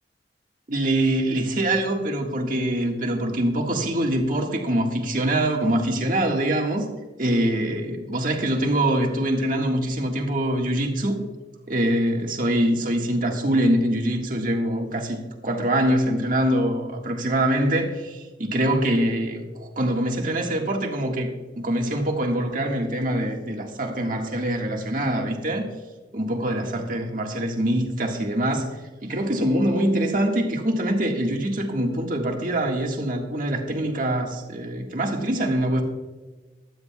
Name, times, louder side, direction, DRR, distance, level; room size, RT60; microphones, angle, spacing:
voice 1, 0.7-6.9 7.2-11.2 11.7-21.3 21.6-25.7 26.1-28.7 29.0-35.8, right 1 dB, 50° right, 1 dB, 1.7 m, -24 dB
15.5 x 12.5 x 2.3 m, 1.3 s
head